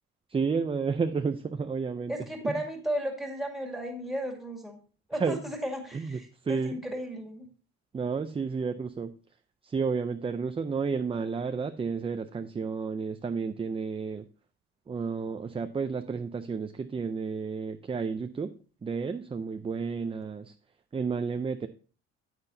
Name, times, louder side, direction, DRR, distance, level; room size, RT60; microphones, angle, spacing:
voice 1, 0.3-2.1 2.4-2.5 5.2-5.4 5.9-6.8 7.9-9.1 9.6-14.3 14.9-18.5 18.8-20.5 20.9-21.7, right 5 dB, 20° right, 8 dB, 0.5 m, -31 dB
voice 2, 2.1-4.8 5.1-7.5, equal, ahead, 2 dB, 2.2 m, -34 dB
9.7 x 8.8 x 2.7 m, 0.37 s
cardioid pair, 120°, 29 cm